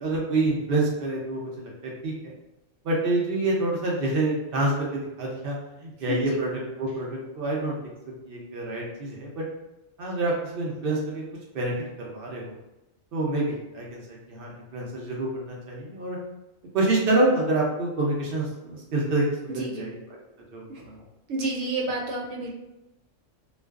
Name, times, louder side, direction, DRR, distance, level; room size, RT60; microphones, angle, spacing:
voice 1, 0.0-2.3 2.8-6.5 6.8-7.8 8.3-9.4 10.0-11.2 11.5-12.5 13.1-14.0 14.3-16.2 16.7-19.3 19.5-19.9 20.5-21.0, right 2 dB, 55° right, -3 dB, 0.7 m, -27 dB
voice 2, 19.5-19.9 20.7-20.8 21.3-22.5, right 2 dB, 80° right, -2 dB, 1.0 m, -30 dB
2.4 x 2.3 x 2.3 m, 0.94 s
omnidirectional pair, 1.4 m